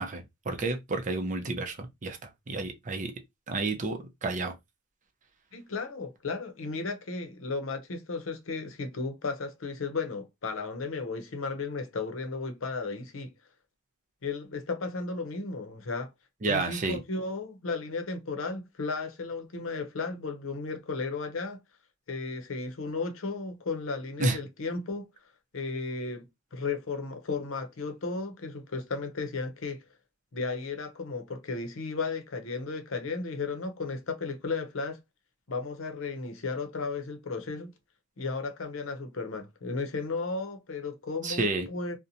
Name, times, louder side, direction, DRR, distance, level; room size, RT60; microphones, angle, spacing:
voice 1, 0.0-3.1 3.5-4.5 16.4-17.0 24.2-24.4 41.2-41.7, right 3 dB, 40° right, 0.5 m, -30 dB
voice 2, 5.5-13.3 14.2-16.1 16.5-21.6 22.1-25.1 25.5-29.8 30.3-35.0 35.5-37.7 38.2-42.0, left 4 dB, 85° left, 0.7 m, -34 dB
2.7 x 2.1 x 2.5 m
head